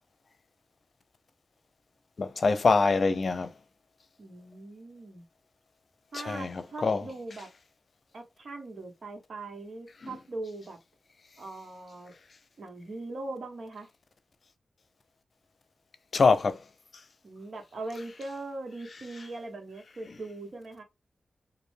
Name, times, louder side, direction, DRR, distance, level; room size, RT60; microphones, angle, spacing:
voice 1, 2.2-3.5 6.3-7.0 16.1-16.6, left 4 dB, 60° left, 0.6 m, -24 dB
voice 2, 4.2-5.2 6.1-7.5 8.1-10.8 11.4-12.1 12.6-13.9 17.2-20.8, right 2 dB, 65° right, 1.3 m, -40 dB
3.1 x 2.5 x 3.3 m
cardioid pair, 50°, 0 cm